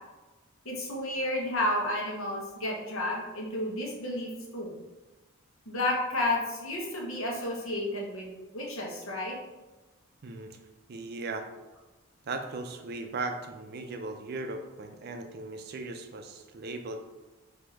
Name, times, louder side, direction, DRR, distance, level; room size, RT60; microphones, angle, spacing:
voice 1, 0.6-4.8 5.7-9.4, left 1 dB, 65° left, -2 dB, 1.2 m, -31 dB
voice 2, 10.2-10.6 10.9-11.5 12.3-17.0, right 3 dB, 45° right, 5 dB, 0.4 m, -37 dB
4.3 x 2.8 x 4.4 m, 1.1 s
head